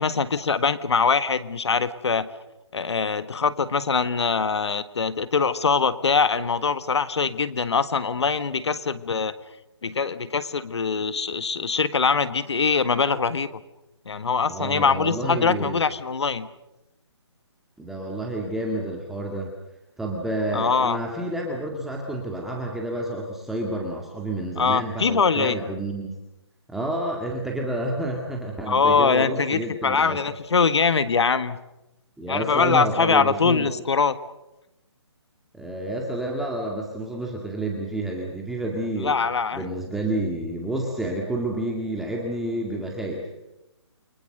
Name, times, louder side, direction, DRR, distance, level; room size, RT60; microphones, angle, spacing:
voice 1, 0.0-2.3 2.7-9.3 9.8-13.5 14.1-16.5 20.5-21.0 24.6-25.5 28.7-31.6 32.3-34.2 39.0-39.6, left 5 dB, 70° left, 13 dB, 1.6 m, -23 dB
voice 2, 14.5-15.8 17.8-19.5 20.0-26.2 26.7-30.2 32.2-33.7 35.5-39.2 39.5-43.3, right 1 dB, ahead, -1 dB, 2.0 m, -29 dB
29.5 x 24.0 x 6.7 m, 0.94 s
hypercardioid pair, 155°, 15 cm